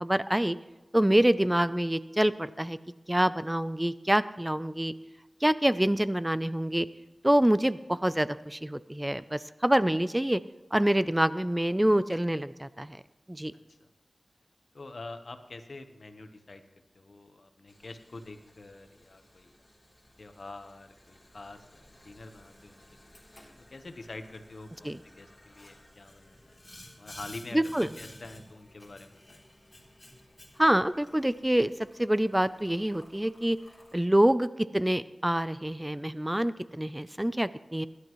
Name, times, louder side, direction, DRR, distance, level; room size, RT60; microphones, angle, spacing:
voice 1, 0.0-0.6 0.9-2.8 3.1-4.9 5.4-6.9 7.2-10.4 10.7-13.0 13.3-13.5 24.9-25.0 27.5-27.9 30.6-31.7 32.0-33.6 33.9-34.5 34.7-37.9, right 1 dB, 15° right, 14 dB, 0.5 m, -26 dB
voice 2, 13.5-13.9 14.7-16.6 16.9-19.5 20.2-23.1 23.7-26.6 27.0-29.4, left 2 dB, 70° left, 8 dB, 1.1 m, -46 dB
Boiling, 17.7-33.9, left 1 dB, 25° left, 3.4 m, -54 dB
21.5 x 11.5 x 3.1 m, 1.1 s
wide cardioid pair, 50°, 0 cm